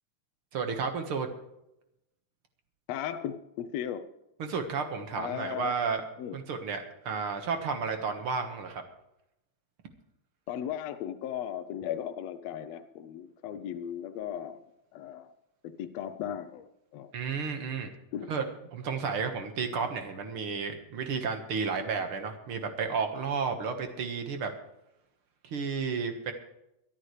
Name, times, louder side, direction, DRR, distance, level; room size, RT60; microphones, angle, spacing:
voice 1, 0.5-1.3 4.4-6.0 6.3-8.8 17.1-17.9 18.3-18.5 18.7-24.5 25.4-26.3, right 5 dB, 50° right, 6 dB, 2.0 m, -32 dB
voice 2, 2.9-4.1 5.1-5.8 6.2-6.4 10.5-14.6 14.9-15.3 15.6-17.1 18.1-18.3, left 10 dB, 75° left, 9 dB, 1.6 m, -36 dB
23.0 x 11.5 x 3.2 m, 0.87 s
omnidirectional pair, 3.5 m